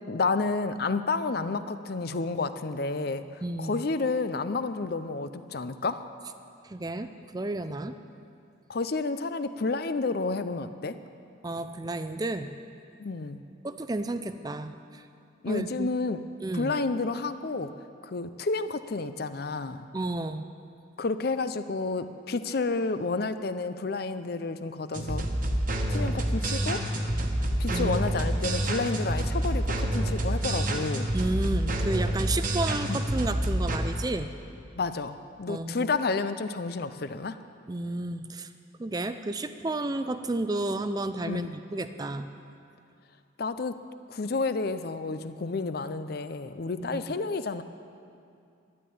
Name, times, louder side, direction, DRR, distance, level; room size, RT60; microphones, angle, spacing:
voice 1, 0.1-6.1 8.7-11.0 13.0-13.4 15.4-16.3 16.5-17.7 18.0-19.9 21.0-25.2 25.9-26.8 27.6-31.1 32.9-33.0 34.8-37.4 41.3-41.5 43.4-43.8 44.1-47.6, left 3 dB, 50° left, 11 dB, 0.5 m, -30 dB
voice 2, 3.4-3.8 6.6-7.9 11.4-12.5 13.6-15.0 15.5-15.9 16.4-16.8 19.9-20.4 27.7-28.0 31.1-34.3 35.5-35.9 37.7-38.5 38.8-42.3 46.9-47.0, right 2 dB, 20° right, 10 dB, 0.4 m, -32 dB
sound 1, 24.9-33.8, right 1 dB, 40° right, 1.2 m, -28 dB
12.0 x 10.0 x 8.7 m, 2.5 s
head